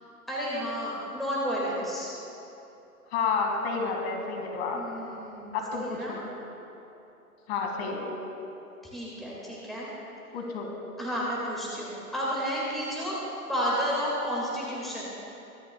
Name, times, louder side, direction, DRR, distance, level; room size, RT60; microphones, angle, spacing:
voice 1, 0.3-2.1 4.7-6.2 8.8-9.9 11.0-13.2 13.5-15.0, equal, ahead, -6 dB, 1.8 m, -31 dB
voice 2, 3.1-4.8 5.5-6.2 7.5-8.0 10.3-10.7, left 4 dB, 40° left, 2 dB, 2.0 m, -30 dB
23.5 x 10.0 x 2.2 m, 3.0 s
hypercardioid pair, 120°, 46 cm